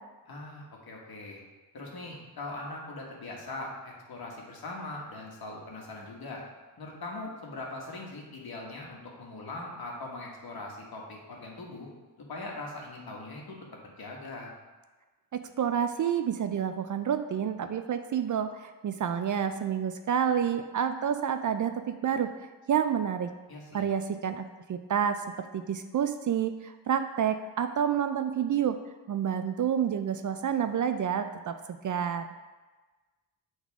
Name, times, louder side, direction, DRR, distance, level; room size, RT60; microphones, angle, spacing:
voice 1, 0.3-1.4 1.7-6.4 6.8-11.9 12.3-13.6 14.0-14.5 23.5-23.9, left 2 dB, 55° left, -2 dB, 1.7 m, -41 dB
voice 2, 15.3-21.7 22.0-22.3 22.7-23.3 23.7-25.2 25.5-28.8 29.1-32.3, right 8 dB, 45° right, 9 dB, 0.5 m, -29 dB
8.7 x 4.0 x 3.6 m, 1.2 s
cardioid pair, 80°, 43 cm